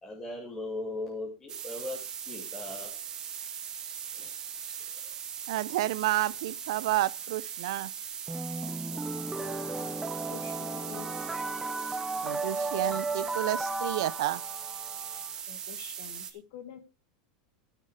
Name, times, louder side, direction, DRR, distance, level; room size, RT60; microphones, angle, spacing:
voice 1, 0.0-2.9 4.1-4.3 4.6-4.7, left 2 dB, 15° left, 2.5 m, -38 dB
sound 1, 1.5-16.3, right 8 dB, 25° right, 1.2 m, -39 dB
voice 2, 5.5-7.9 12.2-14.4, right 16 dB, 75° right, 0.5 m, -30 dB
sound 2, 8.3-15.3, right 2 dB, 5° right, 0.5 m, -35 dB
voice 3, 8.9-9.3 9.6-11.2 15.5-17.0, left 9 dB, 65° left, 2.1 m, -48 dB
12.5 x 6.6 x 5.0 m
supercardioid pair, 165°, 3 cm